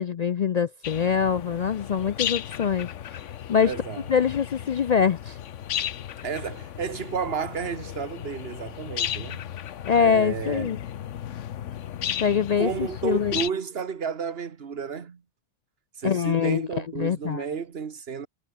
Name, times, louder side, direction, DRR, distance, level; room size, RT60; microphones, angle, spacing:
voice 1, 0.0-3.2 3.5-3.7 4.1-5.4 9.9-10.8 12.2-13.4 16.0-16.7 17.0-17.4, left 7 dB, 65° left, 0.4 m, -24 dB
sound 1, 0.8-13.5, left 10 dB, 85° left, 1.2 m, -35 dB
voice 2, 3.6-4.0 6.2-9.4 10.0-10.8 12.6-15.2 16.0-18.3, right 6 dB, 55° right, 1.5 m, -32 dB
omnidirectional pair, 1.2 m